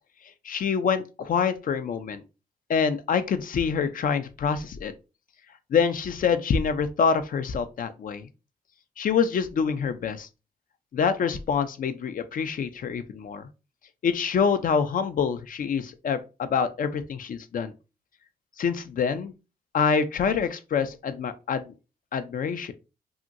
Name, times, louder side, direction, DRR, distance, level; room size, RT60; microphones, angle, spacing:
voice 1, 0.4-2.2 2.7-4.9 5.7-8.3 9.0-10.3 10.9-13.5 14.0-17.7 18.6-19.3 19.7-21.7 22.1-22.7, left 6 dB, 60° left, 0.4 m, -26 dB
2.8 x 2.5 x 2.5 m
supercardioid pair, 45°, 16 cm